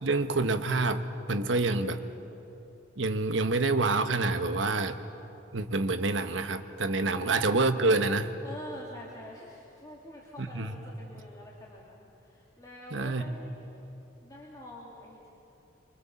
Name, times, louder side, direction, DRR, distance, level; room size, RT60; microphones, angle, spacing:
voice 1, 0.0-2.0 3.0-4.9 5.5-8.3 10.4-10.7 12.9-13.3, right 3 dB, 70° right, 8 dB, 1.2 m, -27 dB
voice 2, 8.4-13.9 14.2-15.3, left 1 dB, 20° left, -4 dB, 2.4 m, -47 dB
24.5 x 24.5 x 7.1 m, 2.9 s
head